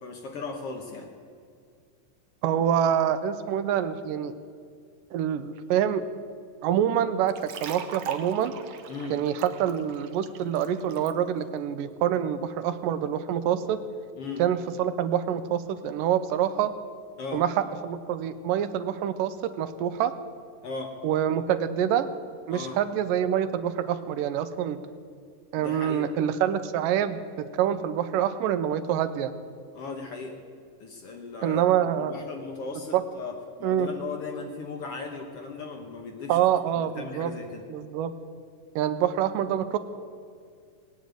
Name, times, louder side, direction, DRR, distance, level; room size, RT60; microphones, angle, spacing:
voice 1, 0.0-1.1 8.9-9.2 14.2-14.4 17.2-17.4 20.6-20.9 22.5-22.8 25.6-26.1 29.7-30.4 30.8-36.4 36.7-37.6, left 4 dB, 55° left, 3 dB, 1.8 m, -37 dB
voice 2, 2.4-4.3 5.1-6.0 6.6-7.3 7.6-8.5 9.1-13.8 14.4-16.7 17.3-17.5 17.8-20.1 21.0-22.1 22.5-24.8 25.5-29.3 31.4-32.1 32.9-33.0 33.6-33.9 36.3-37.3 37.7-38.1 38.8-39.8, right 10 dB, 85° right, 11 dB, 2.4 m, -26 dB
sound 1, 7.3-11.1, right 8 dB, 70° right, 1.5 m, -40 dB
18.5 x 8.4 x 9.1 m, 2.2 s
omnidirectional pair, 3.8 m